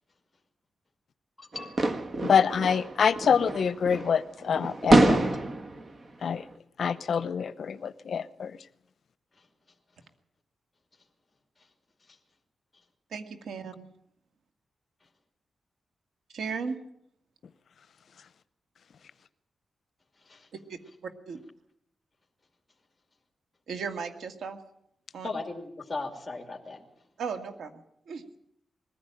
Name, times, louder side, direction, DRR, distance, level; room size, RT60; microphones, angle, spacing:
voice 1, 1.4-1.8 20.3-20.5 25.2-26.8, left 3 dB, 20° left, 2.6 m, -37 dB
sound 1, 1.5-4.2 4.5-5.8, right 2 dB, 40° right, 1.5 m, -26 dB
voice 2, 2.2-5.2 6.2-6.4 6.8-8.6, left 7 dB, 65° left, 0.7 m, -26 dB
voice 3, 13.1-13.9 16.3-16.8 20.7-21.4 23.7-24.6 25.1-25.3 27.2-28.4, right 5 dB, 85° right, 2.1 m, -36 dB
21.5 x 15.0 x 8.9 m
cardioid pair, 95°, 0 cm